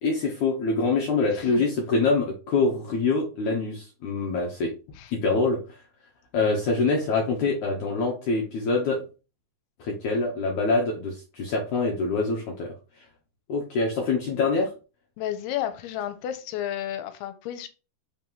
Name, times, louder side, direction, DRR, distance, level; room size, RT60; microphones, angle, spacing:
voice 1, 0.0-4.7 5.1-5.6 6.3-9.0 9.8-13.1 13.5-14.7, left 3 dB, 65° left, -1 dB, 2.0 m, -25 dB
voice 2, 1.3-1.6 5.0-5.1 15.2-17.7, left 11 dB, 90° left, 10 dB, 2.7 m, -32 dB
5.9 x 3.1 x 5.5 m, 0.32 s
omnidirectional pair, 4.7 m